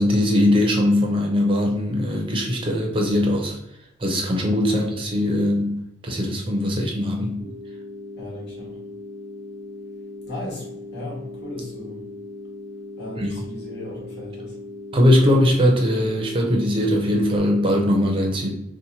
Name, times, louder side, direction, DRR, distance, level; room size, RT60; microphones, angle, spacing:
voice 1, 0.0-3.5 4.0-5.8 6.0-7.4 13.2-13.3 14.9-18.5, left 1 dB, 30° right, 1 dB, 0.5 m, -20 dB
sound 1, 7.4-17.4, left 2 dB, 10° left, 1.0 m, -38 dB
voice 2, 8.2-8.8 10.2-12.0 13.0-14.6, left 1 dB, 65° left, -4 dB, 1.4 m, -36 dB
2.8 x 2.1 x 3.9 m, 0.85 s
head